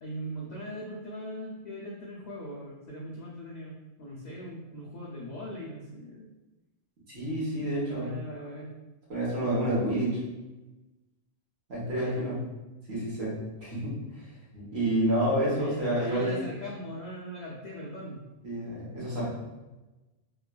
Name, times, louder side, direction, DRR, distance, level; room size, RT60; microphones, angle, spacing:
voice 1, 0.0-6.3 7.7-8.7 11.9-12.4 15.5-18.2 18.9-19.2, equal, 65° left, -5 dB, 0.4 m, -40 dB
voice 2, 7.1-8.1 9.1-10.2 11.7-12.4 12.9-14.3 14.5-16.3 18.4-19.3, right 1 dB, 60° right, -7 dB, 1.3 m, -29 dB
3.0 x 2.3 x 2.2 m, 1.1 s
omnidirectional pair, 1.3 m